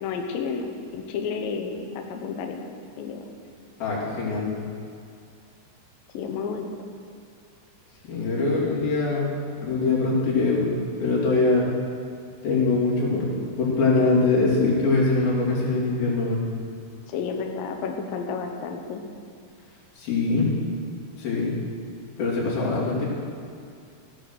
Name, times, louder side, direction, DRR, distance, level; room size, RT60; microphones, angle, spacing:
voice 1, 0.0-2.7 3.0-3.2 6.1-6.7 17.1-19.0, left 5 dB, 90° left, 4 dB, 2.0 m, -31 dB
voice 2, 3.8-4.5 8.1-10.7 11.0-11.7 12.4-13.3 13.6-16.4 20.0-20.5 21.2-21.5 22.2-23.1, left 3 dB, 55° left, -6 dB, 4.6 m, -23 dB
16.0 x 8.5 x 6.5 m, 2.3 s
omnidirectional pair, 5.5 m